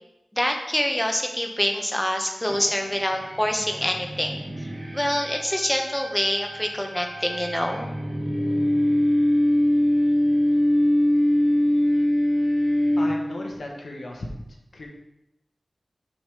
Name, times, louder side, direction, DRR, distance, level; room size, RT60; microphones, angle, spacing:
voice 1, 0.3-4.7 4.9-7.9, equal, 10° left, 3 dB, 0.8 m, -26 dB
sound 1, 2.5-13.5, left 1 dB, 20° right, 1.3 m, -23 dB
voice 2, 13.0-14.3 14.7-14.9, left 1 dB, 85° left, 0 dB, 1.1 m, -36 dB
6.2 x 3.4 x 5.3 m, 0.92 s
wide cardioid pair, 75°, 0 cm